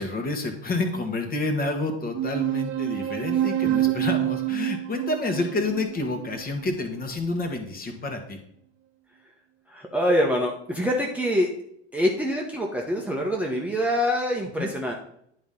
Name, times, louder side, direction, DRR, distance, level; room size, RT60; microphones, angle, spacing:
voice 1, 0.0-8.4 14.6-14.7, left 2 dB, 25° left, 5 dB, 1.4 m, -29 dB
sound 1, 2.1-7.1, right 14 dB, 40° right, 1.0 m, -27 dB
voice 2, 9.7-11.5 11.9-14.9, equal, 5° right, -1 dB, 1.0 m, -25 dB
10.5 x 4.2 x 3.8 m, 0.72 s
hypercardioid pair, 80°, 33 cm